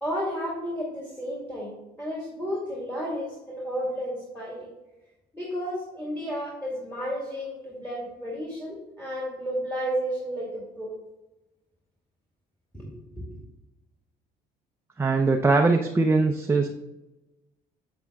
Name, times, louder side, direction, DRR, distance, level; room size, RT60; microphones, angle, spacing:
voice 1, 0.0-4.7 5.3-10.9 12.7-13.4, equal, 10° left, -5 dB, 2.5 m, -32 dB
voice 2, 15.0-16.7, right 3 dB, 15° right, 2 dB, 0.5 m, -21 dB
8.2 x 7.8 x 2.3 m, 1.0 s
cardioid pair, 110°, 17 cm